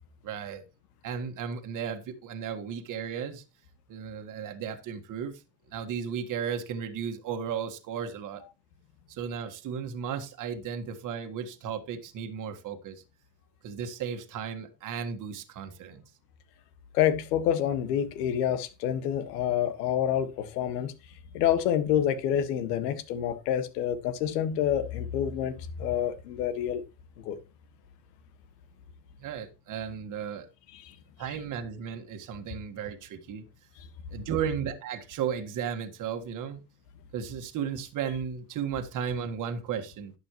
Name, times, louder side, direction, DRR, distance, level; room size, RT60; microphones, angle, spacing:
voice 1, 0.2-0.6 1.0-3.4 3.9-5.4 5.7-8.4 9.1-13.0 13.6-16.0 29.2-30.5 31.2-33.4 34.1-36.6 37.1-40.1, right 7 dB, 40° right, 1.7 m, -34 dB
voice 2, 16.9-20.9 21.3-26.8 27.2-27.4 30.8-30.9, left 10 dB, 85° left, 1.7 m, -27 dB
11.5 x 9.1 x 3.0 m
supercardioid pair, 130°, 48 cm